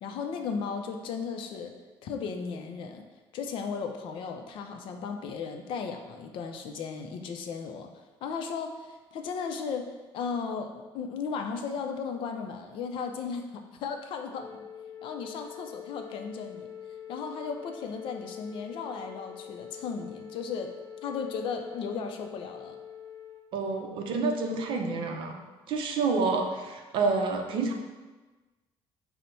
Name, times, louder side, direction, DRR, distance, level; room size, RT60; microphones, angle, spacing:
voice 1, 0.0-1.7 2.0-3.0 3.3-7.9 8.2-14.6 15.0-16.7 17.1-20.7 21.0-22.8, left 5 dB, 55° left, 5 dB, 0.4 m, -35 dB
Wind instrument woodwind instrument, 14.3-23.4, left 9 dB, 15° right, 1.3 m, -45 dB
voice 2, 23.5-25.4 25.7-27.7, right 4 dB, 55° right, 3 dB, 0.5 m, -28 dB
5.3 x 2.1 x 4.3 m, 1.2 s
cardioid pair, 180°, 10 cm